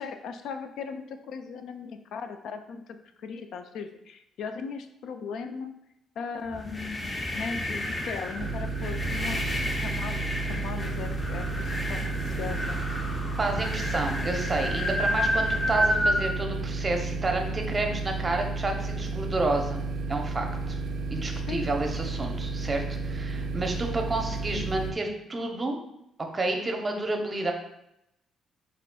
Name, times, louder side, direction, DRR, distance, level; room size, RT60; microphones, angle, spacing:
voice 1, 0.0-5.7 6.2-12.8 21.3-21.7, left 5 dB, 75° left, 7 dB, 0.4 m, -38 dB
sound 1, 6.5-16.3, equal, 25° left, 0.7 m, -30 dB
sound 2, 8.4-24.9, right 3 dB, 65° right, 0.3 m, -32 dB
voice 2, 13.4-19.8 20.1-20.8 21.1-25.8 26.3-27.5, right 2 dB, 30° right, 3 dB, 0.7 m, -30 dB
4.2 x 4.0 x 2.3 m, 0.81 s
cardioid pair, 90°, 0 cm